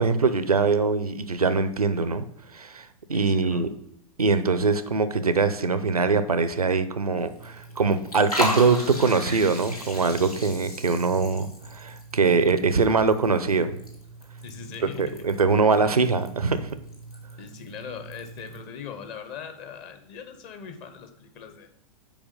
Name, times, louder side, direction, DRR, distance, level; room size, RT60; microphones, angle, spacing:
voice 1, 0.0-2.2 2.5-3.7 4.2-13.8 15.0-16.7, right 4 dB, 80° right, 12 dB, 0.6 m, -23 dB
voice 2, 3.1-3.7 14.4-15.3 15.8-16.1 17.3-21.7, left 7 dB, 35° left, 8 dB, 1.0 m, -41 dB
Liquid, 7.2-18.6, equal, 90° left, 1.6 m, -36 dB
7.2 x 4.9 x 5.3 m, 0.76 s
figure-of-eight pair, 100°, 19 cm